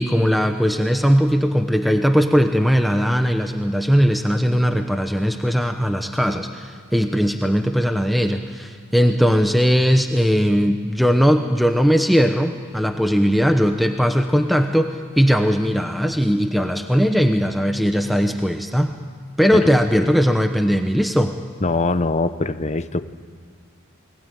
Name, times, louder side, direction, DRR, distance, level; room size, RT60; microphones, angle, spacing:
voice 1, 0.0-18.9 19.4-21.4, equal, ahead, 5 dB, 0.9 m, -19 dB
voice 2, 21.6-23.1, left 3 dB, 30° left, 12 dB, 0.8 m, -22 dB
29.0 x 21.0 x 9.3 m, 2.1 s
head